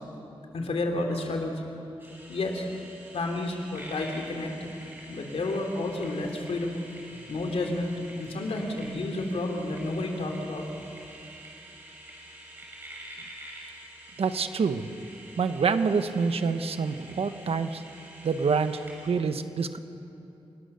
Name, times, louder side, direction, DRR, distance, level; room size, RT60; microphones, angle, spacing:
voice 1, 0.5-1.6 2.3-2.7 3.1-4.7 5.1-6.8 7.1-10.7, left 2 dB, 75° left, 2 dB, 3.2 m, -31 dB
sound 1, 2.0-19.1, right 1 dB, 20° right, 5.6 m, -47 dB
voice 2, 14.2-14.9 15.4-17.8 18.2-19.8, right 5 dB, 75° right, 9 dB, 1.1 m, -27 dB
29.5 x 19.5 x 6.9 m, 2.8 s
wide cardioid pair, 175°, 10 cm